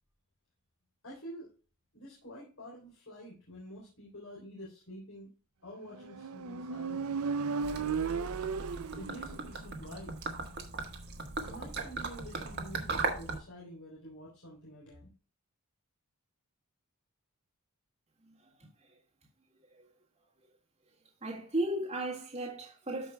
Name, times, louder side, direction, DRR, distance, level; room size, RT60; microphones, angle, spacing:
voice 1, 1.0-1.5 1.9-5.3 5.6-7.2 9.0-10.2 11.4-15.1, equal, 70° left, 3.7 m, -48 dB
Motorcycle, 6.0-9.6, right 5 dB, 75° right, 0.5 m, -35 dB
Gurgling / Liquid, 7.6-13.4, right 4 dB, 50° right, 1.6 m, -38 dB
voice 2, 21.2-23.1, right 1 dB, 30° right, 1.9 m, -35 dB
14.0 x 5.4 x 2.3 m
head